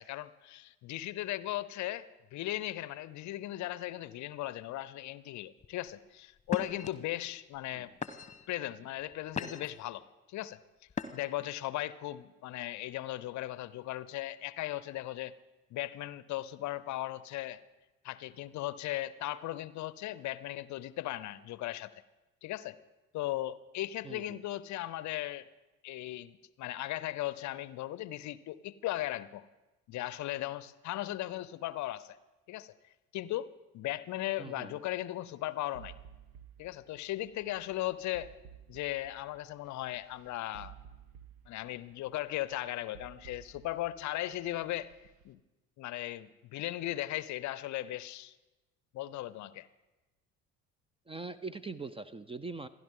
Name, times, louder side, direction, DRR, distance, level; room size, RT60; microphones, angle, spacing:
voice 1, 0.0-8.0 8.5-10.0 10.3-10.6 11.1-15.3 15.7-17.6 18.0-21.9 22.4-22.8 23.1-25.5 25.8-29.4 29.9-32.2 32.5-32.7 33.1-35.9 36.6-38.3 38.7-40.7 41.5-45.0 45.2-45.4 45.8-48.3 48.9-49.7, left 15 dB, 45° left, 17 dB, 0.7 m, -37 dB
sound 1, 5.6-5.9 6.5-6.9 7.6-7.7 8.0-8.5 9.0-9.8 10.9-11.4, left 5 dB, 20° left, 1.2 m, -38 dB
voice 2, 24.0-24.4 34.4-34.8 51.1-52.7, right 3 dB, 15° right, 16 dB, 0.6 m, -42 dB
sound 2, 35.7-45.3, right 9 dB, 60° right, 1.3 m, -55 dB
28.5 x 11.0 x 3.8 m, 1.1 s
figure-of-eight pair, 60°, 41 cm